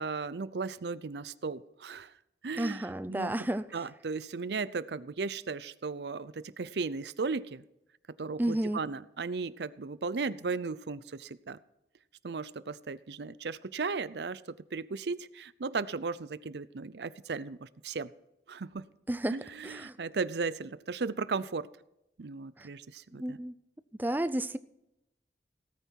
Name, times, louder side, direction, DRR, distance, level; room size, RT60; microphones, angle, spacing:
voice 1, 0.0-2.1 2.4-3.3 3.7-7.6 8.2-11.6 12.2-14.4 14.7-18.1 18.5-18.9 19.3-21.7 22.2-23.4, right 4 dB, 70° right, 0.6 m, -36 dB
voice 2, 2.5-3.6 8.4-8.8 19.1-19.4 19.6-19.9 22.6-22.7 23.1-23.5 24.0-24.6, right 1 dB, 10° right, 0.5 m, -31 dB
17.5 x 9.3 x 4.6 m
head